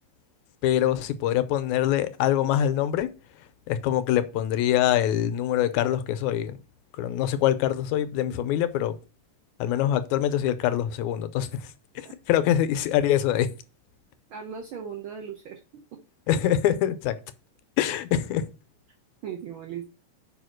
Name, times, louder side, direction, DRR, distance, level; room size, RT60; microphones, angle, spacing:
voice 1, 0.6-3.1 3.7-6.6 7.0-9.0 9.6-11.7 12.0-13.5 16.3-17.2 17.8-18.4, left 11 dB, 80° left, 2.0 m, -24 dB
voice 2, 14.3-16.0 19.2-19.9, right 7 dB, 70° right, 1.2 m, -38 dB
5.0 x 4.8 x 6.3 m
omnidirectional pair, 3.3 m